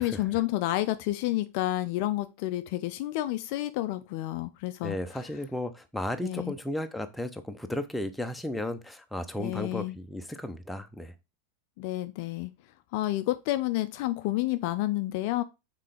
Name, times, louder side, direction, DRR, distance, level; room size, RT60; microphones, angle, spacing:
voice 1, 0.0-5.0 6.2-6.5 9.4-10.0 11.8-12.5 12.9-15.4, left 16 dB, 45° left, 0.5 m, -30 dB
voice 2, 4.8-11.1, left 1 dB, 5° left, 0.7 m, -34 dB
5.6 x 3.8 x 4.9 m
figure-of-eight pair, 90°, 0 cm